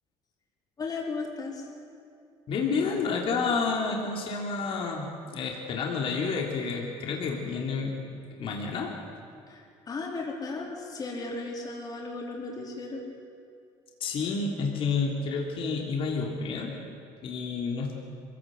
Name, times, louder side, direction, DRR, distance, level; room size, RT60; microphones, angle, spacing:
voice 1, 0.8-1.6 9.5-13.0, left 3 dB, 35° left, -2 dB, 4.5 m, -35 dB
voice 2, 2.5-7.9 8.4-9.0 14.0-16.7 17.2-18.0, left 4 dB, 55° left, -1 dB, 3.3 m, -30 dB
24.0 x 16.5 x 8.0 m, 2.4 s
cardioid pair, 100°, 11 cm